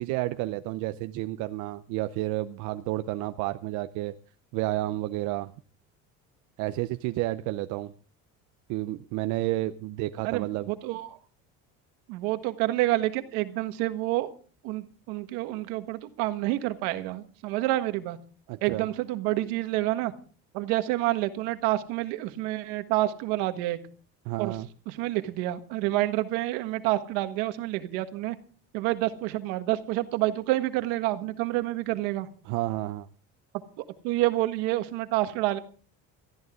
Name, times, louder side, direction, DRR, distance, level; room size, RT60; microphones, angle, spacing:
voice 1, 0.0-4.1 4.5-5.5 6.6-7.9 8.7-10.7 18.5-18.9 24.3-24.7 32.4-33.1, right 17 dB, 70° right, 10 dB, 0.7 m, -31 dB
voice 2, 10.2-11.1 12.1-14.3 14.6-18.2 18.6-20.1 20.5-23.8 24.4-24.6 24.9-28.4 28.7-32.3 34.0-35.6, right 16 dB, 90° right, 9 dB, 1.6 m, -28 dB
19.0 x 14.0 x 3.7 m, 0.41 s
cardioid pair, 135°, 30 cm